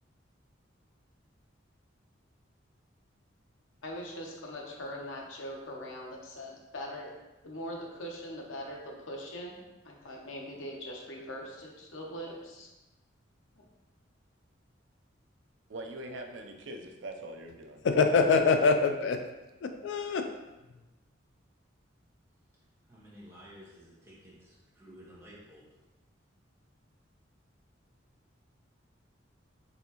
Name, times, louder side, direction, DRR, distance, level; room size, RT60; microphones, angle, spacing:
voice 1, 3.8-7.1 7.4-12.7 13.5-13.6, equal, 90° left, -1 dB, 0.8 m, -41 dB
voice 2, 15.7-17.8, right 1 dB, 65° right, 4 dB, 0.5 m, -42 dB
voice 3, 17.8-19.2 19.8-20.2, left 4 dB, 65° left, 6 dB, 0.3 m, -24 dB
voice 4, 22.9-25.7, equal, 15° right, -7 dB, 1.1 m, -53 dB
4.1 x 3.4 x 2.8 m, 1.0 s
head